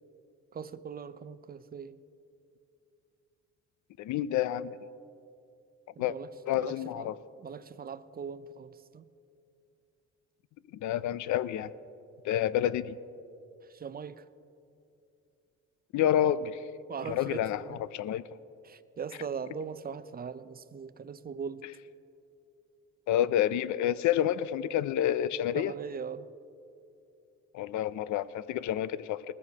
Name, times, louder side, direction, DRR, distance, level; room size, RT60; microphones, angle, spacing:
voice 1, 0.5-2.0 6.0-6.3 6.6-9.1 13.6-14.3 16.9-17.8 18.6-21.6 25.5-26.3, right 6 dB, 30° right, 14 dB, 0.5 m, -40 dB
voice 2, 4.0-4.8 6.0-6.1 6.5-7.1 10.7-11.7 12.2-13.0 15.9-16.6 17.1-17.6 17.9-18.2 23.1-25.7 27.5-29.2, left 11 dB, 75° left, 17 dB, 0.5 m, -28 dB
19.5 x 14.0 x 2.9 m, 2.6 s
cardioid pair, 90°, 30 cm